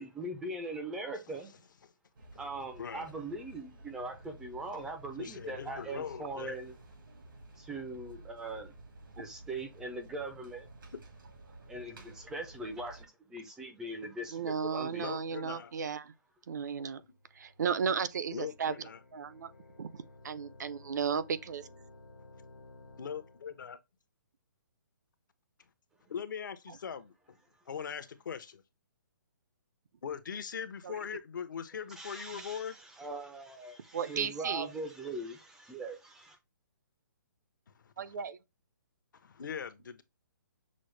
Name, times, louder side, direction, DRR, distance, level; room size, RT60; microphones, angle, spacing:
voice 1, 0.0-1.5 2.4-6.7 7.6-8.7 9.2-10.7 11.7-15.1 32.0-36.4, right 2 dB, 5° right, 0.4 m, -41 dB
sound 1, 2.1-13.1, right 2 dB, 90° right, 1.8 m, -53 dB
voice 2, 2.8-3.1 5.2-6.6 10.9-11.0 15.0-15.8 17.0-17.1 18.3-19.0 23.0-23.8 26.1-27.4 27.7-28.6 30.0-32.8 37.8-38.2 39.2-40.0, left 7 dB, 65° left, 0.8 m, -41 dB
voice 3, 14.3-16.1 16.5-17.0 17.4-18.7 19.1-19.5 19.8-21.7 30.8-31.0 33.9-34.7 38.0-38.4, right 6 dB, 60° right, 0.5 m, -34 dB
sound 2, 16.8-23.6, left 2 dB, 85° left, 1.3 m, -56 dB
6.1 x 2.1 x 3.1 m
hypercardioid pair, 165°, 11 cm